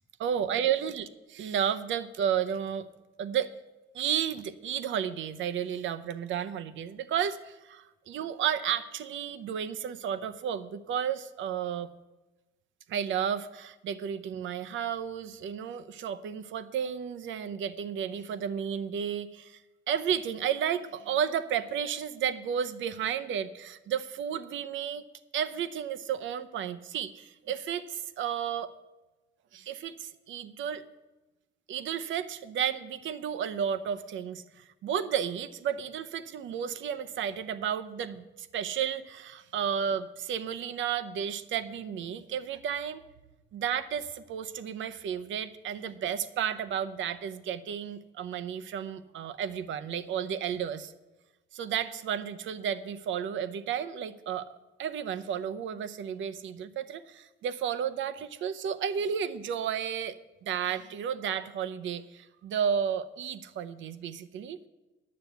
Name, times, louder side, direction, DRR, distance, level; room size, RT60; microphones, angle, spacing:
voice 1, 0.2-2.9 3.2-3.5 3.9-11.9 12.9-19.6 19.9-25.0 25.3-28.7 29.5-30.8 31.7-43.0 43.5-50.9 51.5-54.5 54.8-60.2 60.4-64.6, right 8 dB, 75° right, 12 dB, 0.7 m, -32 dB
9.7 x 6.9 x 8.0 m, 1.1 s
cardioid pair, 90°, 20 cm